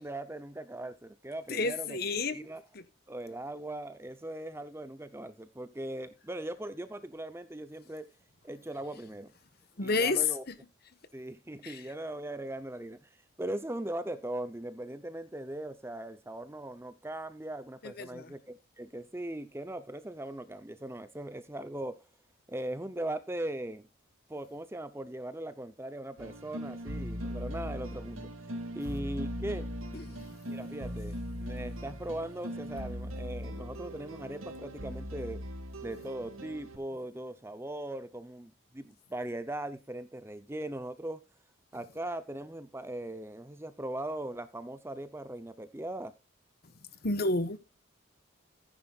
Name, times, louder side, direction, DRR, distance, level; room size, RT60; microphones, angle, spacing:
voice 1, 0.0-2.0 2.3-2.6 3.1-8.1 8.4-9.3 9.8-10.4 11.1-13.1 13.4-22.0 22.5-23.9 24.3-28.3 28.7-29.7 30.4-35.4 35.8-41.2 41.7-46.1, right 1 dB, 10° right, 0.7 m, -39 dB
voice 2, 1.5-2.4 2.7-2.8 9.8-10.5 11.6-11.9 17.8-18.3 29.9-30.7 46.6-46.7 47.0-47.6, left 3 dB, 50° left, 1.2 m, -31 dB
sound 1, 26.2-36.8, equal, 90° right, 2.2 m, -39 dB
14.5 x 9.8 x 2.4 m
head